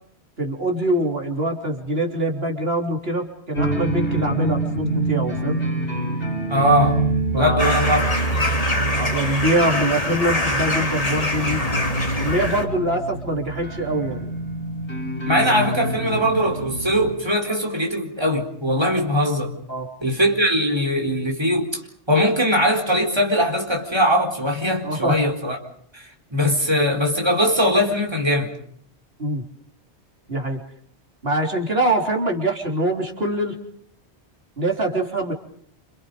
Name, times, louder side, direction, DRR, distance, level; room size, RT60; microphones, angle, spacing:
voice 1, 0.4-5.6 7.3-7.8 8.9-11.6 12.2-14.3 19.7-19.9 24.8-25.2 29.2-29.4 30.3-30.6 31.2-33.6 34.6-35.3, right 1 dB, 60° right, 1 dB, 4.0 m, -24 dB
sound 1, 3.5-17.1, right 2 dB, 80° left, 8.4 m, -26 dB
voice 2, 6.5-7.0 7.3-8.0 15.3-19.6 20.0-21.8 22.1-25.6 25.9-28.5, equal, 25° right, 1 dB, 4.2 m, -21 dB
sound 2, 7.6-12.6, left 1 dB, 30° left, 2.9 m, -24 dB
29.0 x 28.5 x 5.2 m, 0.62 s
omnidirectional pair, 1.1 m